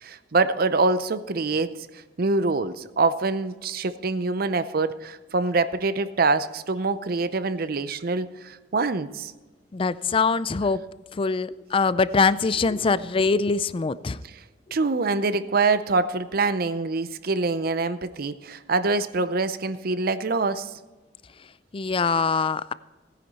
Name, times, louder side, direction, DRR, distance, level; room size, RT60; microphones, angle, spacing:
voice 1, 0.0-1.9 2.2-9.3 14.3-14.4 14.7-20.7, right 3 dB, 55° right, 13 dB, 0.6 m, -25 dB
voice 2, 9.7-10.8 11.1-14.2 21.7-22.7, left 4 dB, 30° left, 17 dB, 0.4 m, -23 dB
17.0 x 10.0 x 4.2 m, 1.2 s
head